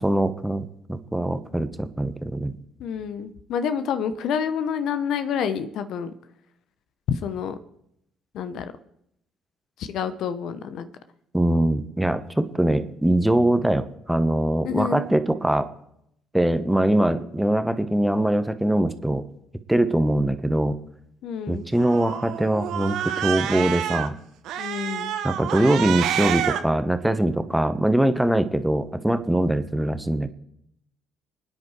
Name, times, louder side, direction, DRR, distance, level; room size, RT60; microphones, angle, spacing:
voice 1, 0.0-2.5 11.3-15.7 16.3-19.2 19.7-20.8 21.5-24.1 25.2-30.3, right 1 dB, 5° right, 10 dB, 1.1 m, -22 dB
voice 2, 2.8-6.1 7.1-7.6 8.3-8.7 9.8-10.9 14.6-15.1 21.2-21.7 24.6-25.1, left 7 dB, 60° left, 11 dB, 0.8 m, -28 dB
Cat, 21.7-24.1 24.5-26.6, right 10 dB, 65° right, 0.9 m, -28 dB
26.5 x 9.7 x 3.2 m, 0.75 s
hypercardioid pair, 50°, 0 cm